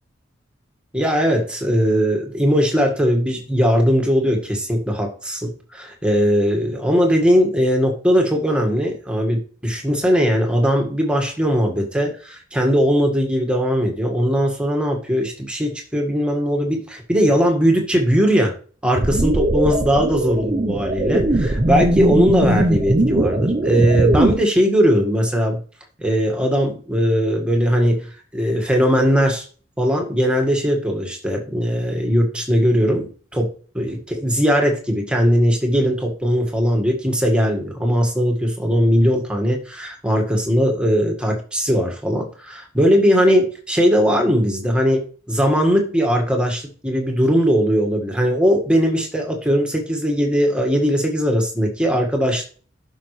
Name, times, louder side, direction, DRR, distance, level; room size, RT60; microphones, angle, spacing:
voice 1, 0.9-18.5 18.8-25.6 26.0-28.1 28.3-29.5 29.8-52.5, equal, 5° right, 2 dB, 1.7 m, -19 dB
sound 1, 19.0-24.3, right 1 dB, 30° right, 0.7 m, -19 dB
11.5 x 5.5 x 3.2 m, 0.39 s
head